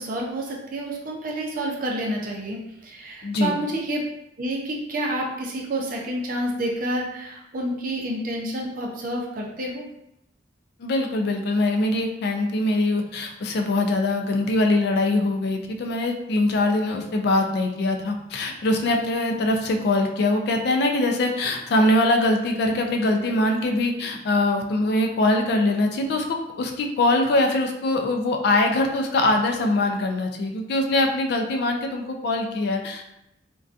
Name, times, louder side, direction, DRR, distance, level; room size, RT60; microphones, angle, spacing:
voice 1, 0.0-4.0 4.4-9.8, right 1 dB, 50° right, -1 dB, 0.5 m, -29 dB
voice 2, 3.2-3.5 10.8-33.1, left 2 dB, 60° left, 3 dB, 0.3 m, -23 dB
2.5 x 2.2 x 2.4 m, 0.84 s
head